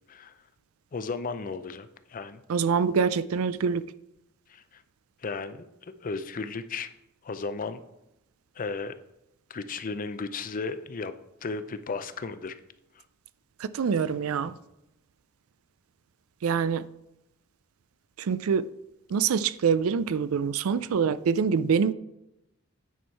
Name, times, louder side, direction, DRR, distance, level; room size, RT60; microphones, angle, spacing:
voice 1, 0.9-2.4 4.5-4.8 5.2-6.9 7.2-7.8 8.6-8.9 9.5-11.1 11.4-12.6 14.4-14.6, left 4 dB, 40° left, 0.5 m, -35 dB
voice 2, 2.5-3.8 13.6-14.5 16.4-16.8 18.2-18.7 19.1-21.9, right 6 dB, 80° right, 0.4 m, -25 dB
9.3 x 4.4 x 4.6 m
head